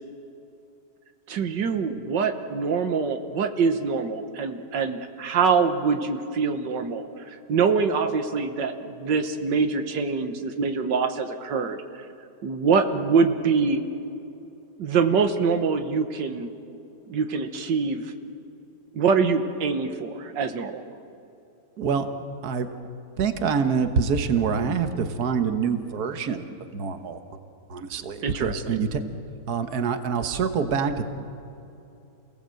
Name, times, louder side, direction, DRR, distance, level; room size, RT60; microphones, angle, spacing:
voice 1, 1.3-11.8 12.4-13.8 14.8-16.5 17.1-18.1 18.9-20.8 28.2-28.8, right 5 dB, 85° right, 7 dB, 1.9 m, -24 dB
voice 2, 21.8-22.1 22.4-22.7 23.2-26.5 26.7-27.2 27.7-29.0 29.5-31.0, right 6 dB, 60° right, 8 dB, 1.7 m, -25 dB
29.0 x 18.0 x 7.8 m, 2.8 s
omnidirectional pair, 1.9 m